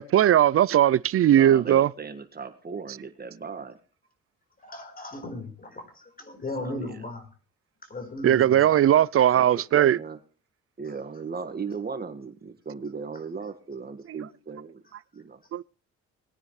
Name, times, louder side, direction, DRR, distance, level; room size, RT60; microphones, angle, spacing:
voice 1, 0.0-1.9 8.2-10.0 15.5-15.6, right 11 dB, 50° right, 0.5 m, -19 dB
voice 2, 1.3-3.8 6.6-7.0 9.3-9.4 9.7-10.2 10.8-14.8 15.1-15.4, right 5 dB, 30° right, 1.8 m, -37 dB
voice 3, 4.6-7.3 7.8-8.8, left 2 dB, 30° left, 4.4 m, -37 dB
20.5 x 9.8 x 3.2 m
cardioid pair, 90°, 30 cm